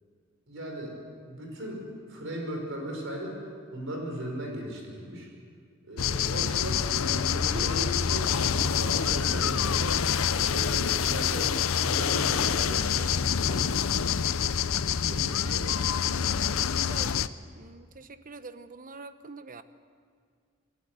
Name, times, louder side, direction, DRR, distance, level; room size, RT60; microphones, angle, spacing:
voice 1, 0.5-0.9 1.2-3.4 3.7-5.3 5.8-10.0 10.4-11.5 11.8-13.2 13.4-14.2 15.1-15.9, right 1 dB, 65° right, 1 dB, 5.6 m, -37 dB
sound 1, 6.0-17.3, left 7 dB, 85° left, 0.6 m, -26 dB
voice 2, 16.6-17.2 17.5-19.6, right 3 dB, 45° right, 11 dB, 0.9 m, -45 dB
28.0 x 12.5 x 8.3 m, 2.1 s
head